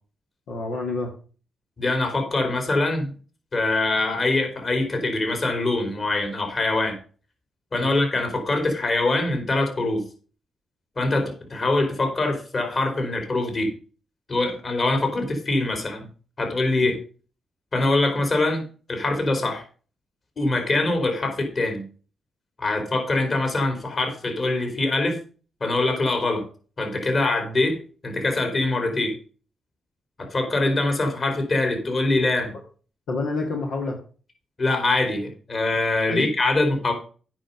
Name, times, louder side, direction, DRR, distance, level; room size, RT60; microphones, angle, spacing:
voice 1, 0.5-1.1 7.8-7.9 16.8-16.9 33.1-34.0 36.1-36.3, left 3 dB, 80° left, 0 dB, 1.8 m, -28 dB
voice 2, 1.8-3.1 3.5-7.0 7.7-10.0 11.0-13.7 14.3-16.1 16.4-17.0 17.7-18.6 18.9-19.6 20.4-21.8 22.6-25.2 25.6-26.4 26.8-29.2 30.2-32.5 34.6-36.9, left 2 dB, 50° left, 4 dB, 4.0 m, -23 dB
8.9 x 5.7 x 6.9 m, 0.39 s
supercardioid pair, 55°, 0 cm